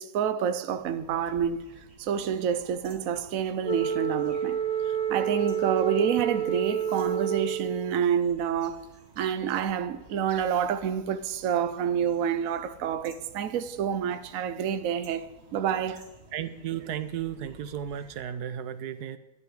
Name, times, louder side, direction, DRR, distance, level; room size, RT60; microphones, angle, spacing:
voice 1, 0.0-1.7 2.0-4.6 4.9-8.8 9.2-16.0, right 8 dB, 65° right, 1.1 m, -28 dB
sound 1, 0.7-18.2, right 2 dB, 40° right, 2.0 m, -54 dB
Wind instrument woodwind instrument, 3.6-8.0, right 8 dB, 5° left, 0.6 m, -29 dB
voice 2, 16.3-19.2, right 10 dB, 85° right, 1.3 m, -34 dB
12.0 x 6.8 x 9.8 m
omnidirectional pair, 1.6 m